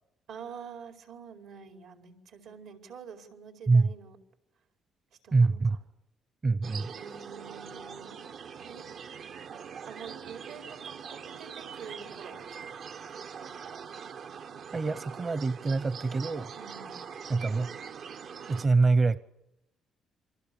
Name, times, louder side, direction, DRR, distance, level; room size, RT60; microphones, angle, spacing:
voice 1, 0.3-4.2 5.2-5.8 6.9-8.2 8.6-8.8 9.8-13.2 16.6-17.0, right 6 dB, 85° right, 4 dB, 4.7 m, -47 dB
voice 2, 5.3-5.8 6.4-6.9 14.7-16.5 17.3-17.7 18.5-19.2, right 3 dB, 35° right, 14 dB, 0.9 m, -25 dB
sound 1, 6.6-18.7, right 6 dB, 65° right, 0.9 m, -43 dB
28.5 x 24.5 x 7.1 m, 0.85 s
cardioid pair, 90°, 0 cm